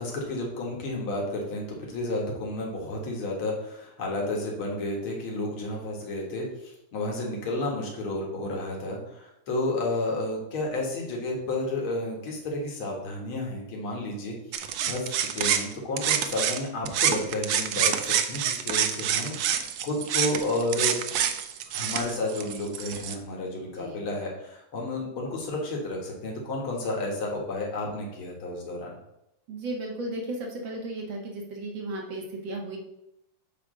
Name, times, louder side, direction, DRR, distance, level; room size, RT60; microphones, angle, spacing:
voice 1, 0.0-14.4 14.9-21.0 21.7-29.0, left 2 dB, 70° left, -1 dB, 2.6 m, -31 dB
sound 1, 14.5-16.6 16.9-23.2, right 9 dB, 80° right, 0.8 m, -27 dB
voice 2, 23.8-24.1 29.5-32.8, right 2 dB, 60° right, 0 dB, 2.2 m, -35 dB
8.3 x 3.4 x 6.4 m, 0.84 s
omnidirectional pair, 2.4 m